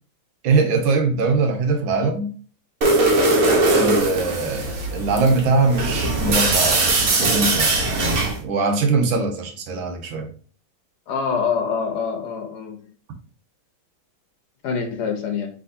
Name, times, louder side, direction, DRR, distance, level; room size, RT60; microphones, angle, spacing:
voice 1, 0.4-2.3 3.7-7.7 8.4-10.3, right 3 dB, 80° right, 5 dB, 1.6 m, -21 dB
sound 1, 2.8-8.4, right 2 dB, 55° right, 1.3 m, -20 dB
voice 2, 11.1-12.8 14.6-15.5, left 6 dB, 65° left, 4 dB, 1.2 m, -25 dB
4.9 x 3.4 x 2.6 m, 0.41 s
omnidirectional pair, 2.1 m